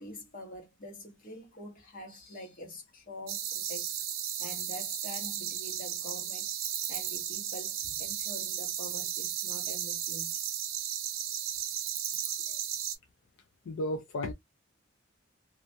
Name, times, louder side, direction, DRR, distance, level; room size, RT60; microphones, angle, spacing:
voice 1, 0.0-3.9 4.4-6.5 6.9-10.3, equal, 40° left, 1.0 m, -45 dB
sound 1, 3.3-13.0, right 10 dB, 85° right, 0.5 m, -35 dB
voice 2, 12.2-12.6 13.6-14.3, left 1 dB, 70° left, 0.4 m, -35 dB
2.4 x 2.1 x 2.5 m
head